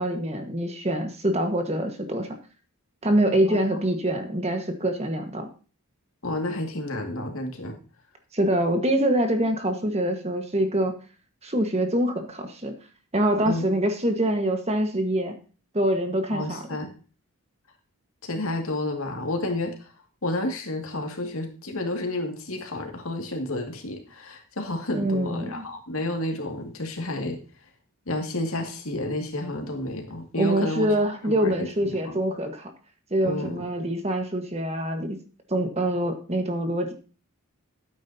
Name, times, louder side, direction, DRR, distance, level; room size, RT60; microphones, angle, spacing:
voice 1, 0.0-2.4 3.0-5.5 8.3-10.9 11.4-12.7 13.1-15.3 15.7-16.6 24.9-25.6 30.4-32.7 33.1-35.2 35.5-36.9, right 1 dB, 30° right, 5 dB, 1.5 m, -25 dB
voice 2, 6.2-7.8 13.4-13.7 16.3-16.9 18.2-19.9 20.2-27.4 28.1-30.9 31.2-32.2 33.2-33.7, left 1 dB, 70° left, 3 dB, 2.3 m, -30 dB
12.0 x 9.2 x 2.8 m, 0.36 s
head